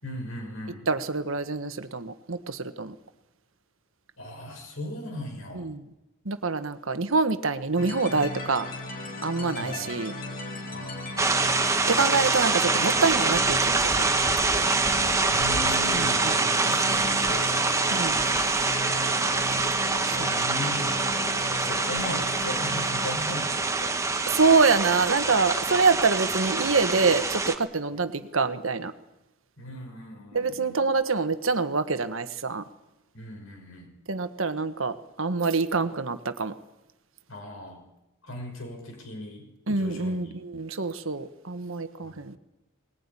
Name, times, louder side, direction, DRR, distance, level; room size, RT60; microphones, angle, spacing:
voice 1, 0.0-0.9 4.2-5.7 9.6-9.9 10.7-11.3 15.3-17.8 20.3-20.9 21.4-24.0 29.6-30.8 33.1-33.9 37.3-37.8 38.2-40.3 42.0-42.4, left 1 dB, 70° left, 2 dB, 6.0 m, -38 dB
voice 2, 0.9-2.9 5.5-5.8 6.2-8.7 9.2-10.1 11.9-14.1 15.9-16.4 17.9-18.2 20.0-20.4 24.3-28.9 30.3-32.6 34.1-36.5 39.7-42.4, right 4 dB, 70° right, 10 dB, 1.3 m, -26 dB
sound 1, 7.8-23.1, left 2 dB, 45° left, 4.5 m, -36 dB
sound 2, 11.2-27.5, right 3 dB, 15° right, 1.2 m, -25 dB
20.5 x 20.0 x 9.9 m, 0.98 s
head